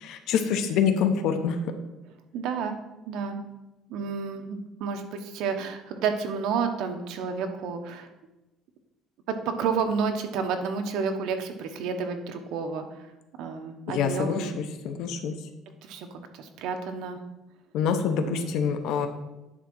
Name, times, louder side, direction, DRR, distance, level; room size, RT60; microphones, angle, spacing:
voice 1, 0.0-1.6 13.9-15.3 17.7-19.1, left 7 dB, 65° left, 7 dB, 0.8 m, -26 dB
voice 2, 2.3-2.8 3.0-3.4 3.9-8.1 9.3-13.0 13.4-14.6 15.8-17.2 18.2-18.5, right 5 dB, 70° right, 6 dB, 1.0 m, -30 dB
10.0 x 3.7 x 6.1 m, 1.0 s
cardioid pair, 155°, 0 cm